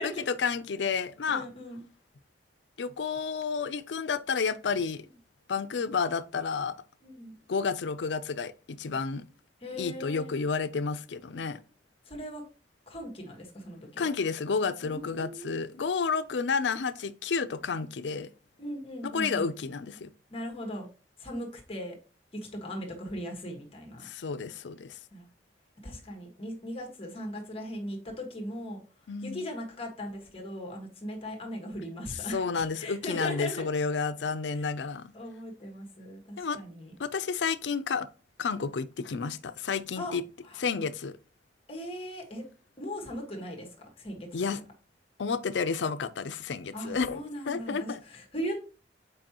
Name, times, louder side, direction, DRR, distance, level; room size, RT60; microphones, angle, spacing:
voice 1, 0.0-1.4 2.8-5.0 5.5-6.8 7.5-9.2 9.8-11.6 14.0-18.3 19.0-20.1 24.0-25.0 29.1-29.4 32.3-35.1 36.4-36.6 37.0-38.1 38.4-40.2 40.6-41.1 44.3-44.6 45.2-47.2 47.5-48.0, left 5 dB, 85° left, 0.5 m, -31 dB
voice 2, 1.3-1.8 7.0-7.4 9.6-10.4 12.0-12.4 12.9-14.1 14.8-15.5 18.6-19.5 20.3-20.9 21.2-22.0 22.3-24.1 25.1-25.3 25.8-33.7 34.5-34.7 35.1-36.9 40.0-40.1 40.4-40.7 41.7-42.4 42.8-44.5 46.7-48.6, equal, 35° left, 1.6 m, -39 dB
7.5 x 4.8 x 3.0 m
head